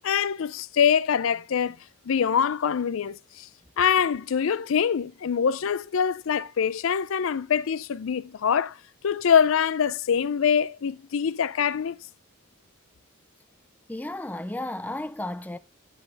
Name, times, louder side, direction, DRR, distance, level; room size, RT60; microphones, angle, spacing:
voice 1, 0.0-1.8 2.1-3.5 3.8-8.8 9.0-12.0, left 7 dB, 65° left, 0.4 m, -24 dB
voice 2, 13.9-15.6, left 1 dB, 10° left, 0.4 m, -33 dB
10.0 x 8.4 x 3.4 m
head